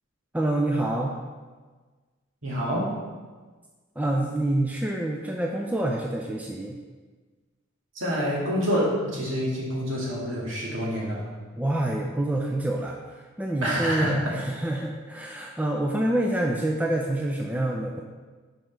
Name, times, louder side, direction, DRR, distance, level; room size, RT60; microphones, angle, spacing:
voice 1, 0.3-1.1 4.0-6.8 11.6-18.0, right 1 dB, 5° right, 0 dB, 0.4 m, -27 dB
voice 2, 2.4-2.9 8.0-11.2 13.6-14.2, equal, 65° right, -5 dB, 2.0 m, -27 dB
6.2 x 5.1 x 4.5 m, 1.4 s
head